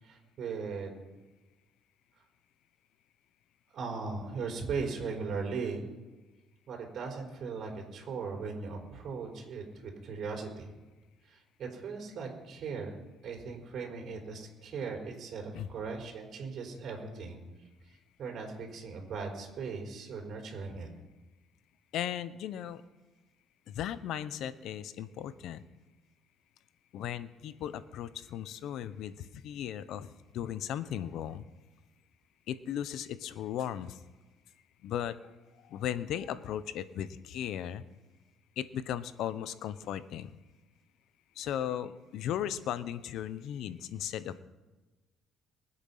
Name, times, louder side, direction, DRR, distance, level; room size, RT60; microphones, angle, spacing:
voice 1, 0.0-1.0 3.7-5.8 6.7-10.7 11.2-13.0 13.2-17.4 17.9-20.9, right 4 dB, 55° right, 0 dB, 4.6 m, -38 dB
voice 2, 21.9-22.8 23.7-25.6 26.9-31.4 32.5-34.0 34.8-35.2 35.6-37.8 38.6-40.3 41.4-44.4, left 10 dB, 70° left, 14 dB, 0.9 m, -36 dB
23.0 x 8.1 x 5.7 m, 1.2 s
cardioid pair, 100°, 0 cm